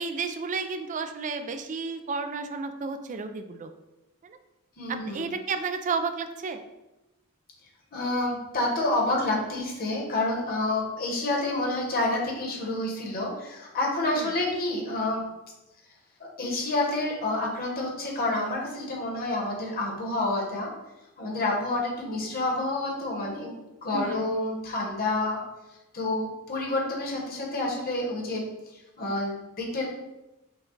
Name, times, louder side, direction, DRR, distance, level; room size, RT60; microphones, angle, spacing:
voice 1, 0.0-3.7 4.2-4.4 4.9-6.6 14.1-14.4 23.9-24.3, right 4 dB, 35° right, 8 dB, 0.4 m, -32 dB
voice 2, 4.8-5.2 7.9-15.2 16.2-20.7 21.2-25.4 25.9-29.9, left 2 dB, 45° left, -1 dB, 1.2 m, -29 dB
5.9 x 2.3 x 3.9 m, 0.99 s
head